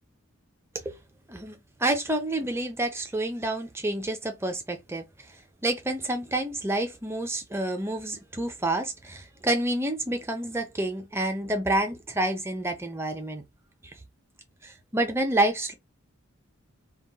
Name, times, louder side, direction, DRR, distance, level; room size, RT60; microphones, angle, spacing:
voice 1, 1.3-5.0 5.6-13.4 14.6-15.7, right 1 dB, 10° right, 0.4 m, -28 dB
2.2 x 2.0 x 3.8 m
head